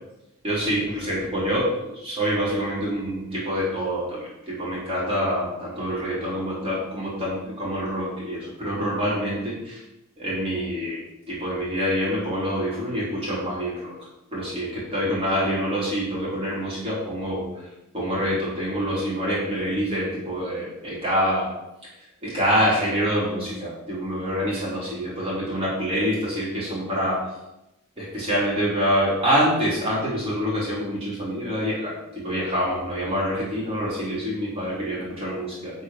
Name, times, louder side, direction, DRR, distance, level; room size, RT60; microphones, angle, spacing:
voice 1, 0.4-9.8 10.2-11.0 11.3-13.9 14.3-17.7 17.9-21.5 22.2-27.2 28.0-35.8, equal, 25° right, -7 dB, 3.9 m, -26 dB
11.5 x 4.9 x 5.9 m, 0.90 s
head